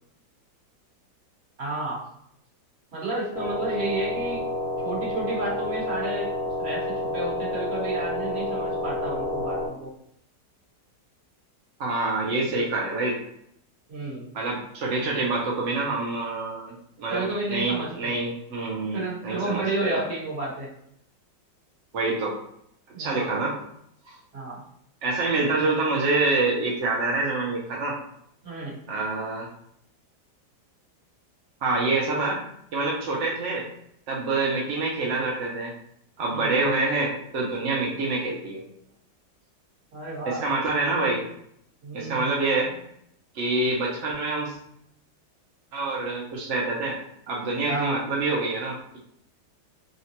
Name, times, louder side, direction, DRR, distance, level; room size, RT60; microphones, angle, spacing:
voice 1, 1.6-2.0 2.9-4.4 4.8-6.3 6.6-6.8 7.1-9.9 13.9-14.3 17.1-18.1 18.9-20.7 22.9-23.4 24.3-24.6 28.4-28.8 36.2-36.6 39.9-40.4 41.8-42.3 47.6-48.0, right 2 dB, 40° right, -6 dB, 1.2 m, -31 dB
sound 1, 3.3-9.7, left 1 dB, 60° left, 1.3 m, -29 dB
voice 2, 11.8-13.2 14.3-17.2 17.5-20.0 21.9-22.3 23.0-23.5 24.1-24.2 25.0-28.0 28.9-29.5 31.6-32.4 32.7-33.6 34.1-35.7 36.2-38.6 40.3-41.2 41.9-42.7 43.3-44.5 45.7-47.0 47.3-49.0, right 3 dB, 75° right, -3 dB, 0.6 m, -26 dB
3.8 x 2.1 x 2.8 m, 0.71 s
omnidirectional pair, 2.0 m